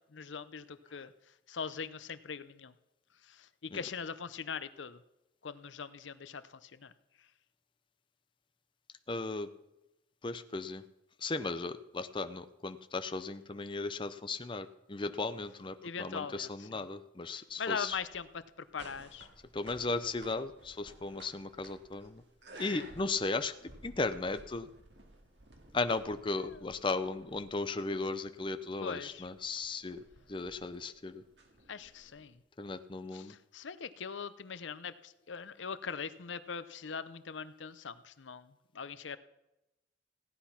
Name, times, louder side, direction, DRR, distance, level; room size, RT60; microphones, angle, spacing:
voice 1, 0.1-1.1 1.5-2.7 3.3-5.0 5.4-6.9 15.8-16.8 17.3-18.4 18.7-19.3 22.7-22.9 26.4-26.6 28.8-29.3 31.7-32.3 33.1-39.2, left 6 dB, 80° left, 14 dB, 0.7 m, -41 dB
voice 2, 9.1-9.5 10.2-10.8 11.2-18.0 19.5-22.2 22.6-23.5 23.8-24.7 25.7-30.0 30.3-31.2 32.6-33.3, left 3 dB, 25° left, 10 dB, 0.6 m, -36 dB
sound 1, 17.5-32.3, right 2 dB, 65° right, 2.2 m, -56 dB
16.0 x 10.5 x 5.8 m, 0.92 s
head